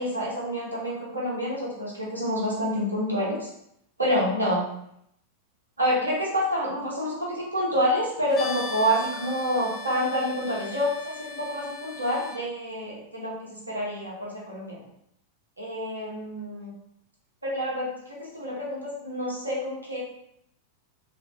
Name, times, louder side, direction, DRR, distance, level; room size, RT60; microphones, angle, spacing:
voice 1, 0.0-3.5 4.0-4.7 5.8-13.3 13.7-14.8 15.6-16.7 17.4-20.0, equal, 80° right, -4 dB, 0.9 m, -28 dB
sound 1, 8.3-12.4, left 3 dB, 25° left, 0.4 m, -39 dB
2.6 x 2.3 x 2.7 m, 0.74 s
figure-of-eight pair, 90°, 0 cm